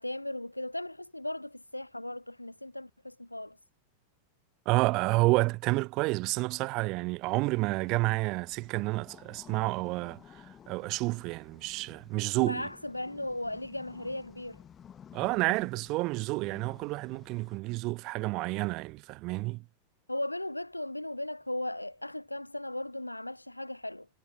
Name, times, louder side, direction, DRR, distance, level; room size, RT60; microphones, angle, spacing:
voice 1, 0.0-3.6 12.3-14.6 20.1-24.1, left 1 dB, 85° left, 0.5 m, -37 dB
voice 2, 4.7-12.7 15.1-19.6, right 23 dB, 40° right, 0.5 m, -30 dB
sound 1, 7.2-17.6, left 8 dB, 25° left, 2.2 m, -54 dB
figure-of-eight pair, 90°, 0 cm